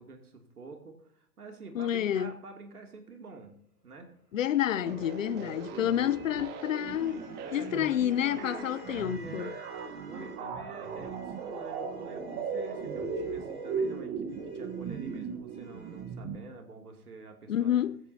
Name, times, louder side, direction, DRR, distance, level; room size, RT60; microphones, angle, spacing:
voice 1, 0.0-3.6 3.8-4.1 5.3-5.5 5.8-6.1 7.4-9.5 10.0-17.8, right 3 dB, 70° right, 2.8 m, -47 dB
voice 2, 1.7-2.3 4.3-7.2 7.5-9.5 17.5-18.0, left 11 dB, 55° left, 0.9 m, -29 dB
sound 1, 3.8-10.5 10.8-16.1, right 2 dB, 90° right, 6.7 m, -56 dB
sound 2, 4.8-16.4, right 5 dB, 20° right, 1.3 m, -38 dB
24.0 x 8.9 x 2.8 m
figure-of-eight pair, 115°, 47 cm